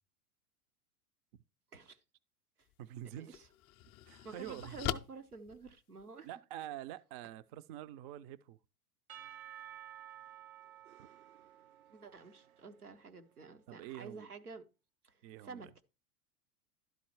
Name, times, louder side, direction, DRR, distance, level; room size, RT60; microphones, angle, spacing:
voice 1, 1.7-2.0 2.6-2.7 3.2-3.5 4.2-6.3 11.9-14.6 15.0-15.8, right 4 dB, 90° right, 1.2 m, -50 dB
sound 1, 2.6-2.7 3.3-6.3, left 13 dB, 25° left, 0.4 m, -42 dB
voice 2, 2.8-3.4 4.0-4.8 6.2-8.6 13.7-14.3 15.2-15.7, right 12 dB, 40° right, 0.5 m, -46 dB
Percussion / Church bell, 9.1-13.2, right 11 dB, 70° right, 0.8 m, -53 dB
12.0 x 4.2 x 4.6 m
figure-of-eight pair, 90°, 44 cm